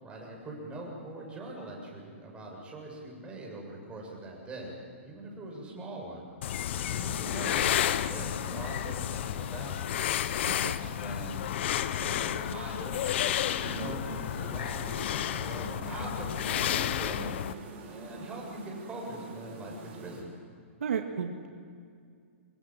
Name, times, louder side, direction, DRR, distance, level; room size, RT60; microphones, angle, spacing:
voice 1, 0.0-4.8 5.0-6.3 6.7-10.1 10.7-17.4 17.9-20.3, right 1 dB, 15° right, -1 dB, 7.2 m, -42 dB
sound 1, 6.4-17.5, left 11 dB, 55° left, 0.9 m, -31 dB
sound 2, 13.1-20.2, right 4 dB, 35° right, 6.1 m, -45 dB
voice 2, 20.8-21.5, right 7 dB, 75° right, 5 dB, 2.0 m, -33 dB
25.0 x 23.0 x 7.6 m, 2.2 s
hypercardioid pair, 135°, 7 cm